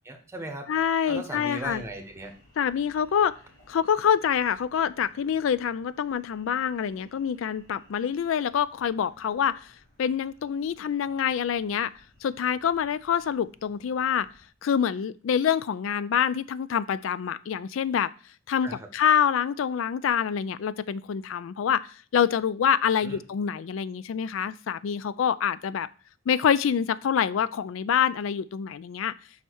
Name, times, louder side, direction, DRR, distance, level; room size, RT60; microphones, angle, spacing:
voice 1, 0.0-0.7 1.1-2.3 18.6-18.9 23.0-23.2, right 1 dB, 15° right, 4 dB, 1.2 m, -37 dB
voice 2, 0.7-1.8 2.6-3.4 3.7-9.7 10.0-11.9 12.2-14.3 14.6-18.1 18.5-25.9 26.3-29.1, left 8 dB, 80° left, 18 dB, 0.4 m, -26 dB
sound 1, 1.6-14.5, left 1 dB, 60° left, 3.5 m, -60 dB
5.6 x 4.5 x 6.2 m, 0.39 s
head